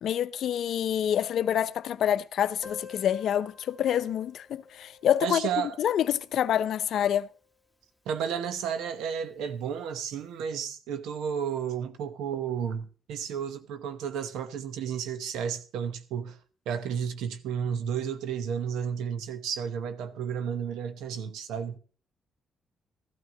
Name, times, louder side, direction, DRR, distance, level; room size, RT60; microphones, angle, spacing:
voice 1, 0.0-5.4 5.8-7.3, left 10 dB, 70° left, 0.6 m, -27 dB
Piano, 2.6-8.0 8.2-8.3 8.6-8.7 9.0-9.1 9.9-10.1, left 5 dB, 5° left, 1.5 m, -51 dB
voice 2, 5.2-5.8 8.1-16.4 16.7-21.8, right 7 dB, 85° right, 0.9 m, -32 dB
14.0 x 12.5 x 3.8 m
cardioid pair, 90°, 0 cm